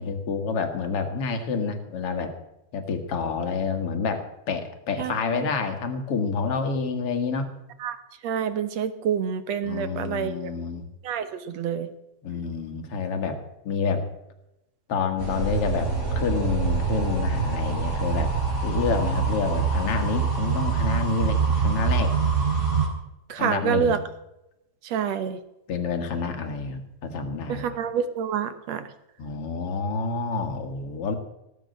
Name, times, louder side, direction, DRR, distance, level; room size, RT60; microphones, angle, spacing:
voice 1, 0.0-2.3 2.7-7.5 9.6-10.8 12.2-13.4 13.6-14.1 14.9-18.3 18.6-22.1 23.4-24.0 25.7-27.8 29.2-31.2, left 4 dB, 50° left, 6 dB, 2.2 m, -28 dB
voice 2, 8.2-10.5 11.0-11.9 23.3-24.0 24.8-25.4 27.5-28.9, right 8 dB, 65° right, 12 dB, 1.8 m, -27 dB
sound 1, 15.2-22.9, right 5 dB, 20° right, 3.8 m, -25 dB
17.5 x 8.3 x 7.7 m, 0.89 s
omnidirectional pair, 4.0 m